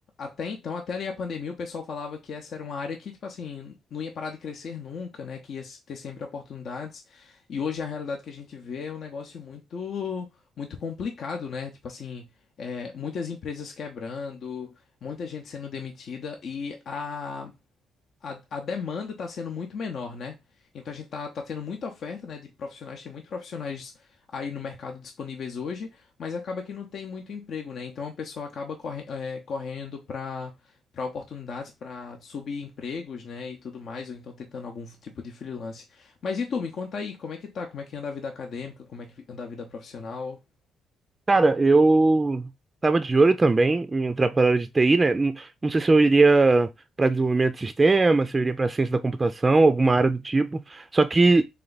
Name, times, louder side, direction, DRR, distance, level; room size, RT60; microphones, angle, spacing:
voice 1, 0.2-12.3 12.6-17.5 18.2-20.4 20.7-40.4, left 5 dB, 60° left, 0.7 m, -35 dB
voice 2, 41.3-42.5 42.8-46.7 47.0-51.4, right 3 dB, 25° right, 0.4 m, -20 dB
3.4 x 3.3 x 3.9 m
cardioid pair, 90°, 0 cm